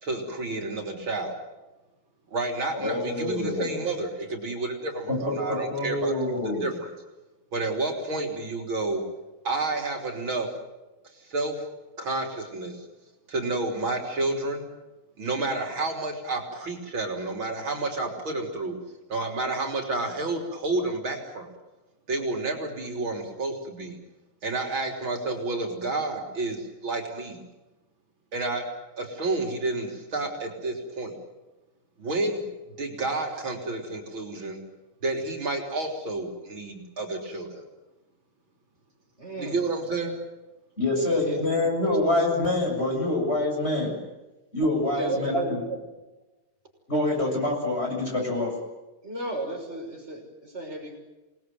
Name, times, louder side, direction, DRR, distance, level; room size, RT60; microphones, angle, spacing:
voice 1, 0.0-1.4 2.3-6.1 6.4-6.9 7.5-9.0 9.4-10.5 11.2-11.6 12.0-12.9 13.3-14.7 15.2-18.8 19.1-21.5 22.1-24.0 24.4-27.4 28.3-28.6 29.0-31.2 32.0-32.4 32.8-34.6 35.0-37.6 39.4-40.2, right 2 dB, 65° right, 2 dB, 4.2 m, -30 dB
voice 2, 2.7-3.9 5.1-6.7 40.8-43.9 44.5-45.6 46.9-48.5, left 2 dB, 25° left, 1 dB, 7.7 m, -26 dB
voice 3, 39.2-39.6 39.9-40.1 40.9-42.0 44.9-45.8 49.0-51.0, right 2 dB, 30° right, 1 dB, 6.5 m, -34 dB
27.5 x 20.0 x 9.2 m, 1.1 s
omnidirectional pair, 2.4 m